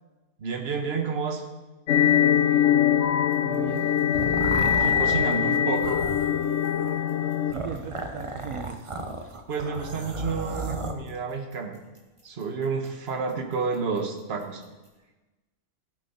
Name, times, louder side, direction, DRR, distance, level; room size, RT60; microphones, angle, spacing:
voice 1, 0.4-1.4 4.7-6.0 9.5-11.7 12.2-14.6, right 5 dB, 45° right, 4 dB, 1.5 m, -30 dB
sound 1, 1.9-7.5, left 9 dB, 60° left, 0.9 m, -22 dB
sound 2, 3.0-15.0, left 6 dB, 15° right, 2.3 m, -43 dB
voice 2, 3.4-3.9 4.9-5.8 7.5-8.8, right 7 dB, 75° right, 5 dB, 1.2 m, -37 dB
sound 3, 3.7-10.9, right 3 dB, 30° right, 0.6 m, -34 dB
14.5 x 8.7 x 4.3 m, 1.1 s
omnidirectional pair, 1.5 m